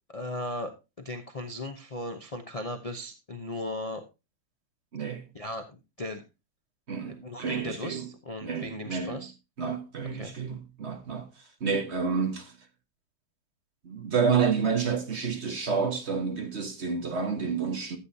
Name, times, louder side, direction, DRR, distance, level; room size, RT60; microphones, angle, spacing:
voice 1, 0.1-4.0 5.3-6.2 7.1-9.3 10.1-10.3, left 1 dB, 55° left, 0.3 m, -37 dB
voice 2, 4.9-5.2 6.9-8.1 8.4-9.2 9.6-12.6 13.8-18.0, right 5 dB, 40° right, 1.4 m, -29 dB
13.0 x 8.2 x 2.7 m
omnidirectional pair, 2.1 m